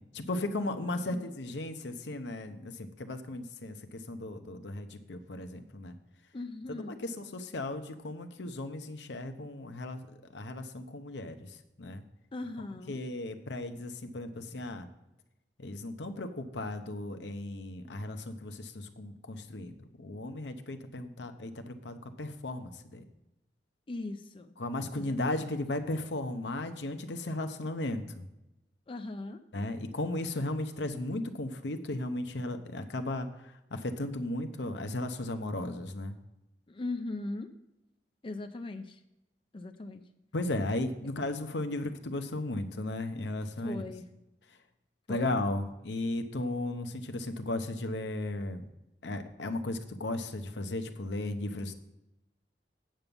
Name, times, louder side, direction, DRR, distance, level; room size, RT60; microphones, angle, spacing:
voice 1, 0.1-6.0 6.7-10.1 10.3-12.0 12.9-14.9 15.6-23.0 24.6-28.2 29.5-36.2 40.3-43.8 45.1-48.6 49.0-51.7, left 2 dB, 80° left, 7 dB, 0.9 m, -35 dB
voice 2, 6.3-7.0 12.3-13.0 23.9-24.5 24.9-25.5 28.9-29.4 36.7-37.5 38.2-39.0 39.5-40.0 43.6-44.0 45.1-45.3, left 2 dB, 30° left, 7 dB, 0.5 m, -39 dB
8.9 x 5.3 x 6.9 m, 0.94 s
head